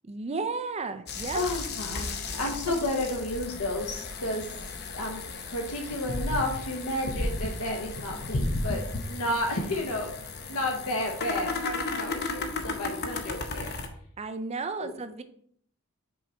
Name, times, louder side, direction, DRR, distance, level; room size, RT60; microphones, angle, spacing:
voice 1, 0.0-1.4 14.2-15.2, right 4 dB, 30° right, 9 dB, 0.5 m, -33 dB
sound 1, 1.1-13.9, left 3 dB, 45° left, 0.7 m, -34 dB
voice 2, 1.3-4.5 4.9-5.2 5.5-8.8 9.1-10.1 10.5-13.7 14.8-14.9, left 1 dB, 85° left, 2 dB, 1.0 m, -31 dB
6.1 x 4.0 x 4.3 m, 0.63 s
head